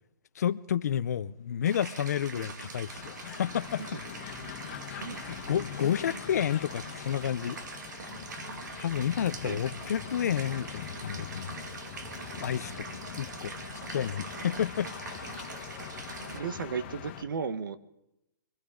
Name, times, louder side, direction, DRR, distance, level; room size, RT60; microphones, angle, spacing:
voice 1, 0.4-3.8 4.9-7.6 8.0-8.1 8.8-11.6 12.4-12.8 13.2-13.5 13.9-14.9, left 9 dB, 50° left, 0.6 m, -30 dB
sound 1, 1.6-16.4, right 4 dB, 55° right, 2.2 m, -43 dB
sound 2, 2.9-17.2, left 9 dB, 30° left, 1.6 m, -43 dB
voice 2, 16.3-17.8, right 6 dB, 70° right, 1.5 m, -34 dB
24.5 x 15.5 x 3.8 m
hypercardioid pair, 175°, 11 cm